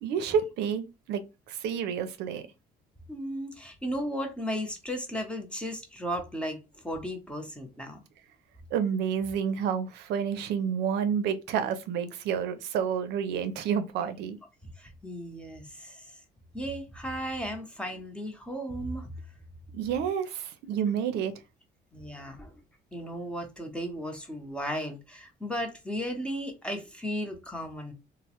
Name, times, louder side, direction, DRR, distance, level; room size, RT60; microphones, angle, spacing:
voice 1, 0.0-1.2 1.5-2.4 8.7-14.4 19.7-21.3, right 7 dB, 80° right, 0.5 m, -29 dB
voice 2, 3.1-8.0 14.8-16.2 16.5-19.1 21.9-22.6 22.9-27.9, equal, 5° left, 0.7 m, -35 dB
3.1 x 2.0 x 2.8 m
cardioid pair, 110°, 17 cm